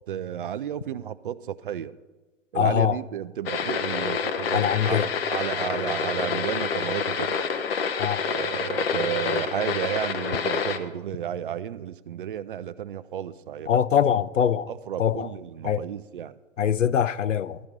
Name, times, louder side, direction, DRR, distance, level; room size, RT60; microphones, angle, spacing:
voice 1, 0.1-2.0 2.5-5.0 5.3-7.4 8.2-14.0 14.7-16.4, right 10 dB, 45° right, 0.5 m, -32 dB
voice 2, 2.5-3.0 4.5-5.1 8.0-8.2 13.7-14.7 15.0-15.3 15.6-15.8 16.6-17.6, left 8 dB, 75° left, 0.5 m, -23 dB
sound 1, 3.5-10.8, left 6 dB, 50° left, 0.9 m, -27 dB
12.5 x 5.7 x 7.7 m
figure-of-eight pair, 115°, 38 cm